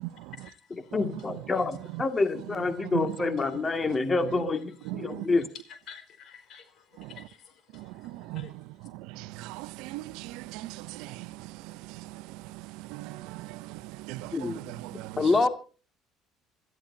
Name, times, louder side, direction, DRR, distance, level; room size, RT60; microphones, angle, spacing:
voice 1, 0.2-1.0 1.5-1.6 2.7-2.8 3.1-4.0 4.7-5.3 5.5-8.9, left 7 dB, 55° left, 4.7 m, -52 dB
voice 2, 0.9-5.4 14.3-15.5, left 3 dB, 30° left, 2.1 m, -27 dB
voice 3, 4.9-5.3 7.0-7.1 7.7-8.4 8.9-15.2, right 18 dB, 70° right, 0.6 m, -39 dB
27.5 x 13.5 x 2.8 m
hypercardioid pair, 60°, 0 cm